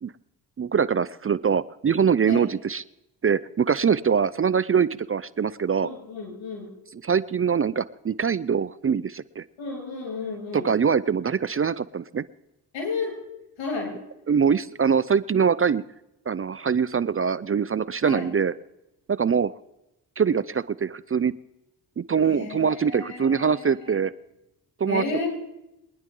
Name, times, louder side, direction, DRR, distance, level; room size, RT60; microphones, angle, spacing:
voice 1, 0.6-2.8 3.2-5.9 6.9-9.4 10.5-12.2 14.3-15.8 16.3-18.5 19.1-19.5 20.2-21.3 22.0-24.1 24.8-25.2, right 6 dB, 30° right, 18 dB, 0.5 m, -23 dB
voice 2, 5.8-6.7 9.6-10.7 12.7-13.2 13.6-14.0 18.0-18.3 22.3-24.0 24.8-25.3, left 4 dB, 80° left, 0 dB, 6.9 m, -32 dB
23.5 x 10.5 x 3.8 m, 0.89 s
supercardioid pair, 45°, 45 cm